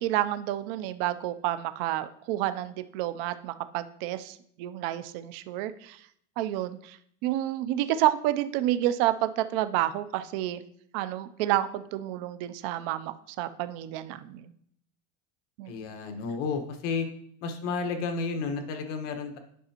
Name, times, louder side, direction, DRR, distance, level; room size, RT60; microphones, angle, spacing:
voice 1, 0.0-6.0 6.4-10.6 10.9-14.5 15.6-15.8, right 13 dB, 55° right, 11 dB, 0.5 m, -29 dB
voice 2, 15.7-17.1 17.4-19.4, left 4 dB, 85° left, 5 dB, 1.3 m, -32 dB
9.3 x 5.9 x 2.9 m, 0.67 s
cardioid pair, 170°, 35 cm